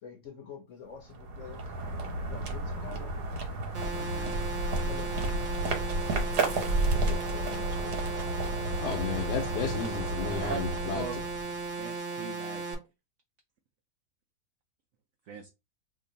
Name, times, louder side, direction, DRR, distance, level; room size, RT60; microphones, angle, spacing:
voice 1, 0.0-1.7 2.3-3.1 3.8-4.3 4.6-5.6 6.7-8.0 9.1-9.2, left 6 dB, 60° left, 1.0 m, -46 dB
sound 1, 1.0-11.7, right 2 dB, 85° right, 1.5 m, -32 dB
sound 2, 3.7-12.7, right 3 dB, 45° right, 1.0 m, -36 dB
voice 2, 8.8-11.1, left 7 dB, 90° left, 1.2 m, -33 dB
voice 3, 11.8-12.6 15.3-15.5, right 5 dB, 70° right, 0.7 m, -38 dB
2.9 x 2.5 x 3.8 m
omnidirectional pair, 1.7 m